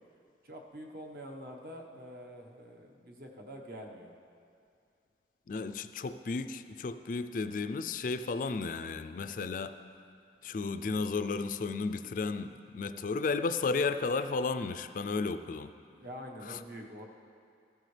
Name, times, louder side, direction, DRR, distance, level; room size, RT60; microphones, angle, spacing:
voice 1, 0.4-4.1 15.9-17.1, equal, 55° right, 1 dB, 1.2 m, -46 dB
voice 2, 5.5-9.7 10.4-15.7 16.5-16.6, left 4 dB, 50° left, 10 dB, 0.4 m, -33 dB
14.5 x 13.0 x 3.3 m, 2.4 s
head